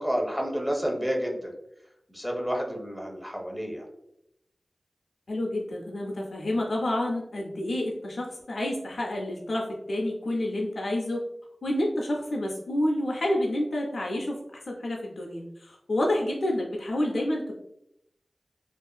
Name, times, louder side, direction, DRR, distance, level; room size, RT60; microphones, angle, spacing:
voice 1, 0.0-1.5 2.1-3.9, equal, 5° right, 1 dB, 0.6 m, -30 dB
voice 2, 5.3-11.2 11.6-14.4 14.7-17.6, left 1 dB, 80° left, -2 dB, 0.4 m, -29 dB
2.4 x 2.3 x 2.2 m, 0.80 s
cardioid pair, 45°, 0 cm